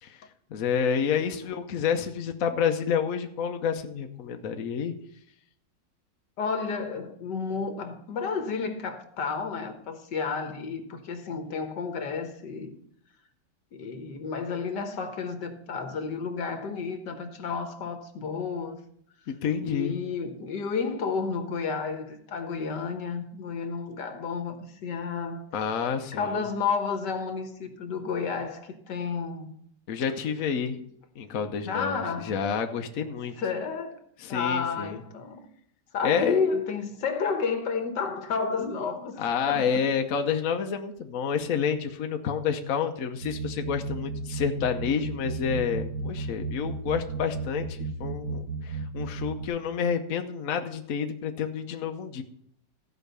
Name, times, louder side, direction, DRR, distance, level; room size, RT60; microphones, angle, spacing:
voice 1, 0.0-4.9 19.3-20.0 25.5-26.4 29.9-30.8 31.2-33.3 34.2-35.0 36.0-36.5 39.2-52.2, left 7 dB, 55° left, 1.1 m, -29 dB
voice 2, 6.4-12.7 13.7-18.8 19.6-24.6 24.8-25.5 26.1-29.5 31.6-32.4 33.4-34.0 34.3-35.4 35.9-39.2 39.5-39.7, left 5 dB, 75° left, 1.9 m, -31 dB
sound 1, 43.2-49.5, right 3 dB, 65° right, 2.1 m, -34 dB
14.5 x 5.1 x 6.8 m
omnidirectional pair, 1.9 m